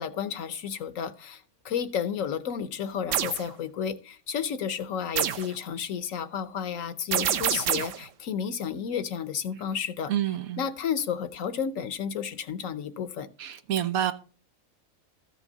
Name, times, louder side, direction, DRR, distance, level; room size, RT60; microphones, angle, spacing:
voice 1, 0.0-10.1 10.6-13.3, left 7 dB, 70° left, 1.2 m, -32 dB
sound 1, 3.1-3.4 5.2-5.5 7.1-8.0, right 10 dB, 65° right, 1.0 m, -27 dB
voice 2, 10.1-10.6 13.4-14.1, right 11 dB, 85° right, 1.3 m, -28 dB
14.0 x 6.3 x 4.0 m
omnidirectional pair, 1.5 m